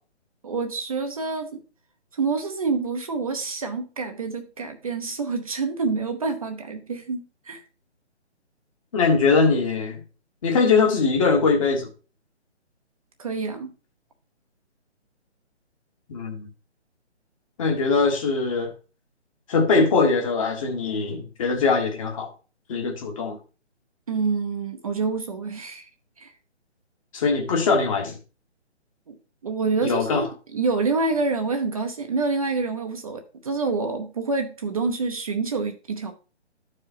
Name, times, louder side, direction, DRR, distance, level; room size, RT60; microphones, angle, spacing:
voice 1, 0.4-1.6 2.1-7.6 13.2-13.7 24.1-25.9 26.2-26.3 29.1-29.2 29.4-30.3 30.5-36.1, right 4 dB, 30° right, 0.7 m, -27 dB
voice 2, 8.9-10.0 10.4-11.9 16.1-16.5 17.6-18.7 19.5-22.3 22.7-23.4 27.1-28.2 29.8-30.2, left 4 dB, 30° left, 1.3 m, -21 dB
12.0 x 4.9 x 2.8 m
figure-of-eight pair, 145°, 35 cm